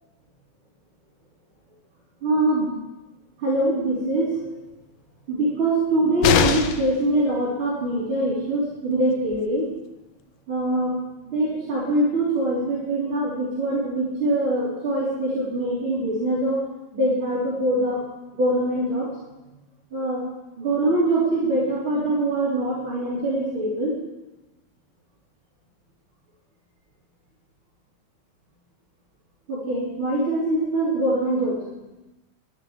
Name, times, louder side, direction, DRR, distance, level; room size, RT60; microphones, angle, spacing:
voice 1, 2.2-2.8 3.4-4.4 5.3-9.6 10.5-10.9 11.3-16.6 16.9-18.0 18.4-19.1 19.9-20.2 20.6-23.9 29.5-31.6, right 1 dB, 30° right, -9 dB, 4.0 m, -23 dB
sound 1, 6.2-7.0 8.9-9.0 9.3-9.4, left 8 dB, 85° left, 2.2 m, -21 dB
12.5 x 10.0 x 7.3 m, 1.0 s
omnidirectional pair, 5.4 m